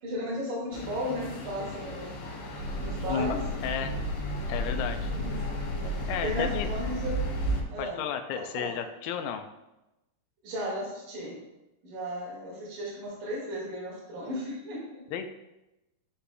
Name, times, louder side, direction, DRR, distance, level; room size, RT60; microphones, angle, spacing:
voice 1, 0.0-2.1 2.8-3.4 5.2-5.4 5.8-7.2 7.7-8.0 8.5-8.8 10.4-11.4 11.8-15.1, equal, 65° right, -5 dB, 3.5 m, -35 dB
sound 1, 0.7-7.6, right 1 dB, 55° left, 2.5 m, -37 dB
sound 2, 2.6-7.6, left 1 dB, 80° right, 0.8 m, -33 dB
voice 2, 3.6-4.0 4.5-5.1 6.1-6.7 7.8-9.5 15.1-15.3, left 8 dB, 80° left, 6 dB, 2.3 m, -32 dB
11.5 x 4.2 x 2.2 m, 0.95 s
omnidirectional pair, 4.3 m